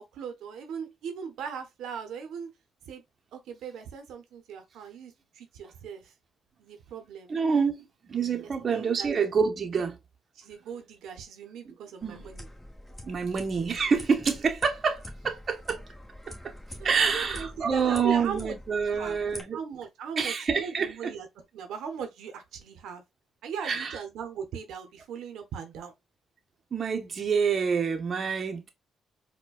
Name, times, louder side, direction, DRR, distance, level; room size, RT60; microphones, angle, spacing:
voice 1, 0.0-2.5 2.9-3.0 3.3-6.1 6.6-7.3 8.4-9.1 9.7-9.8 10.4-12.5 16.8-18.6 18.9-19.2 19.5-21.3 21.5-23.0 23.4-25.9, right 6 dB, 80° right, 0.6 m, -39 dB
voice 2, 7.3-10.0 11.6-11.7 12.0-12.3 13.0-15.8 16.4-16.5 16.8-19.6 20.2-21.1 23.6-24.0 26.7-28.7, right 6 dB, 45° right, 0.7 m, -27 dB
sound 1, 12.0-19.4, left 1 dB, 10° left, 1.1 m, -45 dB
4.6 x 2.1 x 2.3 m
cardioid pair, 90°, 0 cm